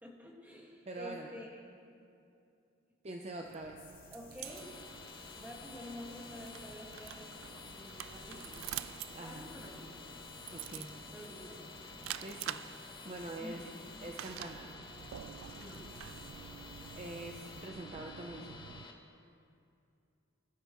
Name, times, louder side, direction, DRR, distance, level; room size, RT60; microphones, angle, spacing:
voice 1, 0.0-1.6 4.1-4.6 5.4-7.3 7.6-8.7 9.2-10.0 10.7-11.7 13.4-13.8 15.5-15.9, left 1 dB, 10° right, -3 dB, 1.7 m, -49 dB
voice 2, 0.9-1.3 3.0-3.8 9.1-9.5 10.5-10.9 12.2-12.6 13.0-13.6 14.0-14.7 16.6-18.7, right 2 dB, 35° right, 1 dB, 0.6 m, -44 dB
sound 1, 3.5-18.8, right 11 dB, 85° right, 0.3 m, -48 dB
sound 2, 3.8-17.7, left 5 dB, 45° left, 1.5 m, -57 dB
sound 3, 4.4-18.9, left 3 dB, 25° left, 1.0 m, -51 dB
21.5 x 12.0 x 3.1 m, 2.5 s
head